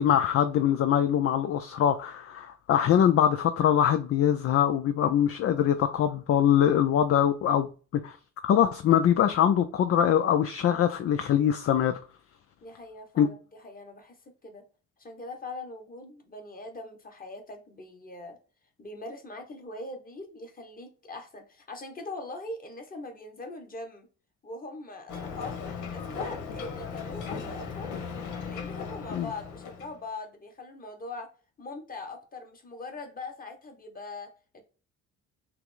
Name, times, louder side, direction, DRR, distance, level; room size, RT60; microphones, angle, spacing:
voice 1, 0.0-8.2 8.4-12.0 13.2-13.3 29.1-29.3, left 9 dB, 50° left, 0.4 m, -23 dB
voice 2, 12.6-14.2 14.4-14.7 15.0-18.4 18.8-24.1 24.4-27.9 28.4-31.3 31.6-34.6, left 2 dB, 30° left, 1.3 m, -41 dB
Ocean, 25.1-30.0, left 6 dB, 80° left, 1.1 m, -37 dB
5.7 x 2.0 x 3.8 m
cardioid pair, 90°, 30 cm